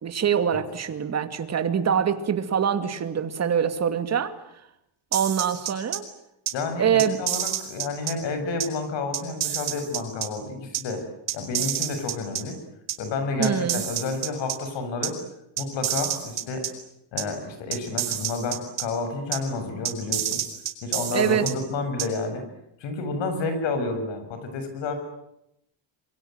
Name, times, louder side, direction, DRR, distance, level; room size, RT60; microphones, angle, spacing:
voice 1, 0.0-4.3 5.1-6.1 6.8-7.2 13.4-13.8 21.1-21.5, right 8 dB, 30° right, 9 dB, 2.5 m, -24 dB
sound 1, 5.1-6.0 6.5-6.6 7.0-8.1 8.6-8.7 9.1-10.3 10.7-10.8 11.3-12.4 12.9-13.0 13.4-14.6 15.0-15.1 15.6-16.7 17.2-17.3 17.7-18.8 19.3-19.4 19.8-21.5 22.0-22.1, right 11 dB, 50° right, 4.8 m, -28 dB
voice 2, 6.5-11.0 11.3-12.6 13.0-15.1 15.6-16.6 17.1-20.4 20.8-22.4 22.8-24.9, left 3 dB, 60° left, 7 dB, 7.4 m, -30 dB
26.5 x 23.5 x 9.2 m, 0.81 s
cardioid pair, 145°, 49 cm